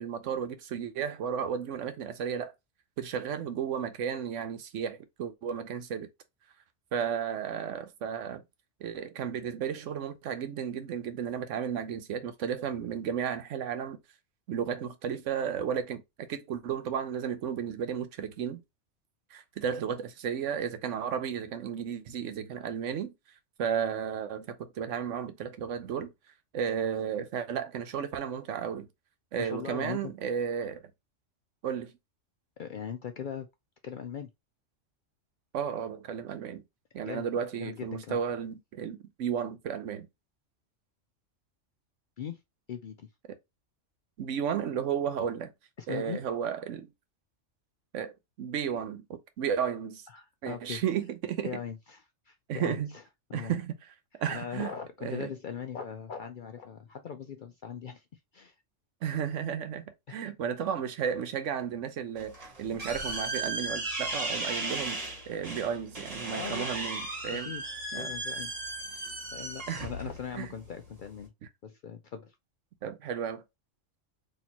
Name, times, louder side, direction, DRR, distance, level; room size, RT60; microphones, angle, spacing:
voice 1, 0.0-2.5 3.0-6.1 6.9-8.4 8.8-14.0 14.5-18.6 19.3-23.1 23.6-26.1 26.5-28.9 29.3-30.8 31.6-31.9 35.5-36.6 36.9-40.1 44.2-45.5 45.9-46.9 47.9-48.1 48.4-50.1 50.4-51.5 52.5-52.9 53.3-53.8 54.2-54.7 55.0-55.3 59.0-67.5 67.9-68.1 69.7-69.9 70.4-70.5 72.8-73.4, right 8 dB, 80° right, 1.0 m, -33 dB
voice 2, 29.4-30.1 32.6-33.5 33.8-34.3 37.1-37.3 37.6-38.2 42.2-42.4 42.7-43.1 45.8-46.2 50.1-50.8 51.4-53.0 53.3-53.5 54.3-58.5 60.1-60.3 66.3-66.7 67.3-67.6 68.0-68.6 68.9-69.0 69.3-71.3 71.6-72.3, left 7 dB, 60° left, 0.5 m, -40 dB
sound 1, 62.2-71.3, right 2 dB, 30° right, 1.2 m, -36 dB
4.3 x 2.8 x 2.9 m
omnidirectional pair, 1.3 m